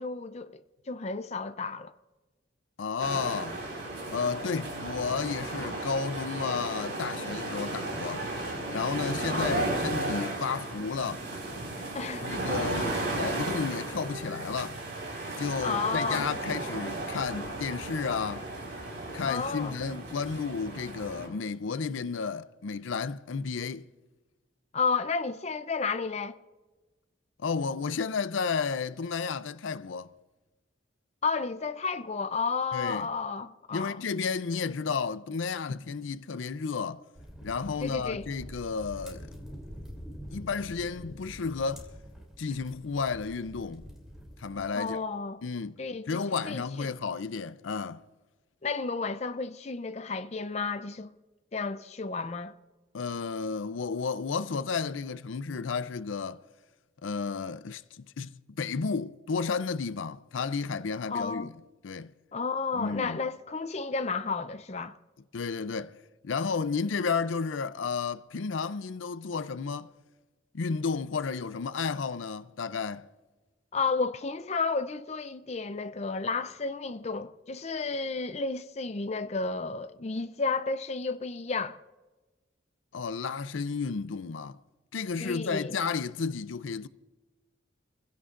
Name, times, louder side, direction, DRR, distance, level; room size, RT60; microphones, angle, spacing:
voice 1, 0.0-1.9 9.3-9.6 11.9-13.1 15.6-16.3 19.3-19.8 24.7-26.4 31.2-34.0 37.8-38.3 44.7-45.4 45.8-46.1 46.5-46.9 48.6-51.1 51.5-52.5 61.1-61.5 62.3-64.9 73.7-81.8 85.2-85.8, left 4 dB, 35° left, 0.5 m, -32 dB
voice 2, 2.8-3.6 4.1-8.3 8.7-11.3 12.2-14.8 15.4-18.5 19.1-23.9 27.4-30.1 32.7-33.1 33.7-37.0 37.4-39.3 40.3-41.9 42.4-43.9 44.4-45.0 45.4-45.7 46.1-48.0 52.9-56.4 57.0-61.5 61.8-62.1 62.7-63.2 65.3-66.0 66.2-69.9 70.5-73.1 82.9-84.6 84.9-86.9, left 5 dB, 85° left, 0.5 m, -32 dB
sound 1, 3.0-21.3, right 2 dB, 65° right, 4.5 m, -34 dB
sound 2, 37.1-44.7, equal, 5° right, 3.0 m, -46 dB
27.5 x 16.0 x 2.5 m
head